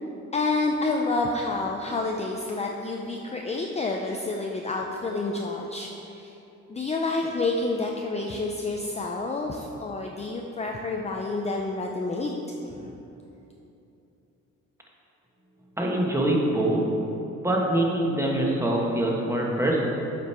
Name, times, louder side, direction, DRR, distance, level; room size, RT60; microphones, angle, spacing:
voice 1, 0.3-6.4 6.7-12.4 12.7-13.0, left 3 dB, 20° left, 1 dB, 0.5 m, -29 dB
voice 2, 15.8-16.8 17.4-19.9, right 1 dB, 10° right, -2 dB, 1.2 m, -24 dB
7.9 x 5.2 x 4.3 m, 3.0 s
cardioid pair, 90°, 30 cm